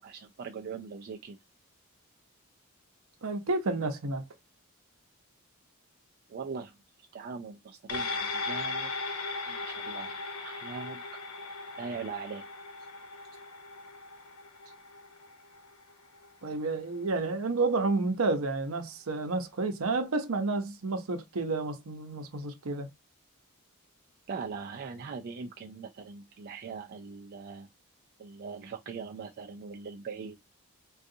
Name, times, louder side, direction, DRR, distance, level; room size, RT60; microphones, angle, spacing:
voice 1, 0.0-1.4 6.3-6.8 7.1-8.9 9.5-11.0 11.8-12.5 24.3-27.7 28.2-30.4, right 5 dB, 45° right, 0.4 m, -41 dB
voice 2, 3.2-4.2 16.4-22.9, right 3 dB, 70° right, 0.7 m, -30 dB
sound 1, 7.9-16.6 17.0-17.1, left 3 dB, 90° left, 0.9 m, -38 dB
3.7 x 2.3 x 2.7 m
head